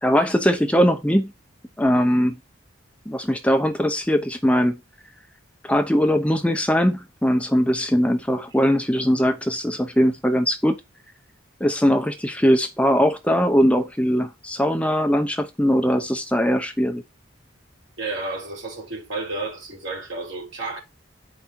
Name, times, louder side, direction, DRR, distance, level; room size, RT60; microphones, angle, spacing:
voice 1, 0.0-1.3 1.8-2.4 3.1-4.8 5.6-10.8 11.6-17.0, equal, 5° left, 0.7 m, -20 dB
voice 2, 18.0-20.8, right 3 dB, 70° right, 4.1 m, -31 dB
8.5 x 5.4 x 4.4 m
head